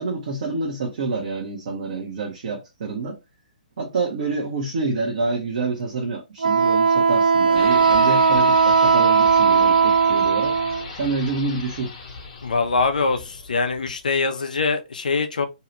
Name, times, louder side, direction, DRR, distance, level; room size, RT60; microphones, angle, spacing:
voice 1, 0.0-3.2 3.8-10.6 10.9-11.9, right 3 dB, 50° right, 0.8 m, -27 dB
Wind instrument woodwind instrument, 6.4-10.9, right 5 dB, 85° right, 0.3 m, -17 dB
sound 1, 7.5-14.2, left 4 dB, 45° left, 1.1 m, -37 dB
voice 2, 12.4-15.5, left 4 dB, 70° left, 0.6 m, -23 dB
2.8 x 2.3 x 3.0 m
figure-of-eight pair, 130°, 5 cm